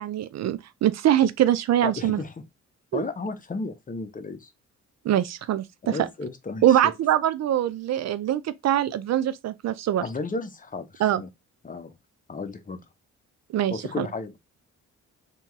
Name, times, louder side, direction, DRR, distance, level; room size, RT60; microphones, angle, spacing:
voice 1, 0.0-2.2 2.9-3.0 5.0-6.0 6.6-10.0 11.0-11.2 13.5-14.1, right 12 dB, 60° right, 0.5 m, -23 dB
voice 2, 1.8-2.4 2.9-4.5 5.8-6.8 10.0-11.3 11.6-11.9 12.3-12.8 13.7-14.4, left 3 dB, 25° left, 0.9 m, -33 dB
3.5 x 3.0 x 4.6 m
cardioid pair, 90°, 30 cm